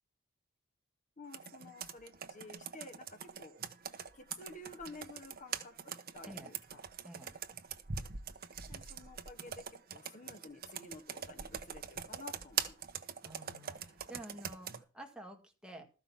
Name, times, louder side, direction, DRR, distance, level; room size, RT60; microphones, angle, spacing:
voice 1, 1.2-3.6 4.0-6.8 8.7-12.8, left 2 dB, 40° left, 7 dB, 1.2 m, -52 dB
Computer keyboard, 1.3-14.8, right 7 dB, 50° right, 1.0 m, -43 dB
voice 2, 13.2-15.9, right 1 dB, 5° right, 3 dB, 1.9 m, -50 dB
13.5 x 5.8 x 7.1 m, 0.35 s
head